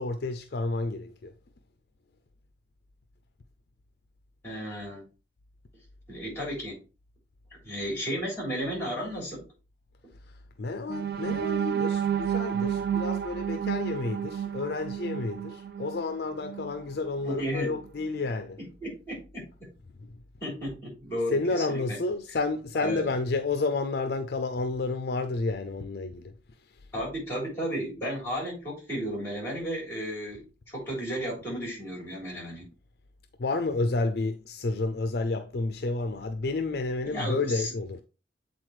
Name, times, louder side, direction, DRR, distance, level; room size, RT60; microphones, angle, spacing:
voice 1, 0.0-1.3 10.6-18.6 20.1-20.2 21.3-26.3 33.4-38.0, left 3 dB, 55° left, 0.5 m, -30 dB
voice 2, 4.4-5.0 6.1-6.8 7.6-9.4 17.2-17.8 18.8-19.7 20.4-22.0 22.8-23.1 26.9-32.7 37.1-37.7, equal, 15° left, 3.4 m, -33 dB
sound 1, 10.9-16.8 17.3-17.5 17.8-18.1, right 9 dB, 55° right, 0.4 m, -31 dB
8.1 x 3.9 x 3.1 m
head